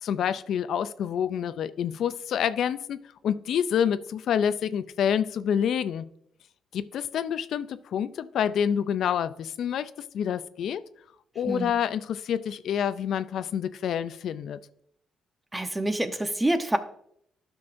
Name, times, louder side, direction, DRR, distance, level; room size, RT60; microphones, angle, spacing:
voice 1, 0.0-6.1 6.7-10.8 11.4-14.6, left 8 dB, 70° left, 13 dB, 0.4 m, -28 dB
voice 2, 15.5-16.8, right 1 dB, 15° right, 8 dB, 0.9 m, -26 dB
12.0 x 6.0 x 2.6 m, 0.70 s
cardioid pair, 75°, 0 cm